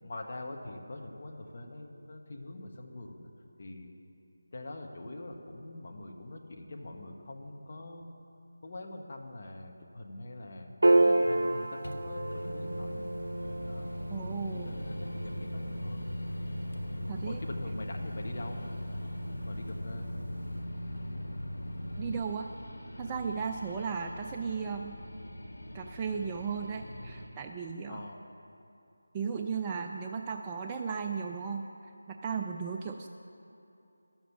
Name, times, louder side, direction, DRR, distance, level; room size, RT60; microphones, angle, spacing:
voice 1, 0.0-3.3 3.6-4.0 4.5-8.1 8.6-13.2 13.5-13.9 14.5-16.1 17.3-18.6 19.4-20.1 23.6-23.8 27.9-28.2, left 2 dB, 40° left, 2 dB, 1.2 m, -44 dB
Piano, 10.8-17.4, right 2 dB, 65° right, 1.0 m, -30 dB
Microwave oven, 11.8-22.2, equal, 80° left, 0.9 m, -39 dB
sound 1, 13.4-27.3, equal, 65° left, 1.6 m, -46 dB
voice 2, 14.1-14.8 17.1-17.4 22.0-22.5 23.0-25.0 25.7-28.1 29.1-31.7 32.1-33.1, right 6 dB, 15° right, 2 dB, 0.3 m, -35 dB
11.0 x 7.3 x 7.1 m, 2.9 s
figure-of-eight pair, 170°, 0 cm